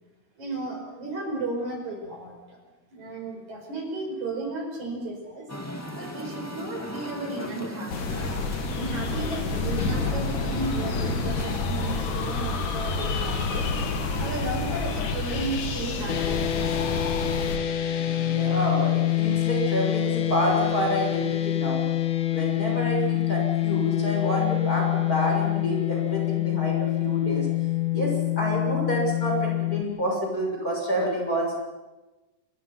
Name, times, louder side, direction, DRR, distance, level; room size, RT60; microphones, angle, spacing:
voice 1, 0.4-2.6 2.9-5.5 6.0-8.2 8.7-13.7 14.2-16.6, right 2 dB, 70° right, 2 dB, 6.7 m, -34 dB
Musical instrument, 5.5-11.6, left 1 dB, 5° left, 1.5 m, -37 dB
sound 1, 7.9-17.6, left 3 dB, 85° left, 3.8 m, -28 dB
sound 2, 16.1-29.8, left 14 dB, 55° left, 1.7 m, -26 dB
voice 2, 18.2-21.8 22.3-27.5 27.9-31.5, equal, 25° left, -1 dB, 7.4 m, -28 dB
27.5 x 23.5 x 6.0 m, 1.1 s
omnidirectional pair, 3.5 m